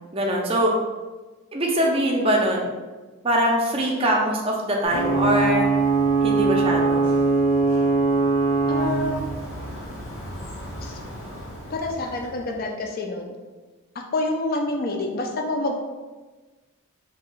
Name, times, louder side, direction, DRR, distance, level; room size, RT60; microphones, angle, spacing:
voice 1, 0.1-0.7 1.5-2.7 3.2-5.7 6.2-7.1, right 1 dB, 25° right, -1 dB, 0.4 m, -22 dB
Ocean / Boat Water vehicle / Alarm, 4.9-12.4, right 3 dB, 60° left, 0.9 m, -23 dB
voice 2, 8.7-9.2 10.8-11.0 11.7-13.3 14.0-15.7, left 2 dB, 45° left, 2 dB, 0.4 m, -27 dB
2.8 x 2.2 x 3.8 m, 1.3 s
head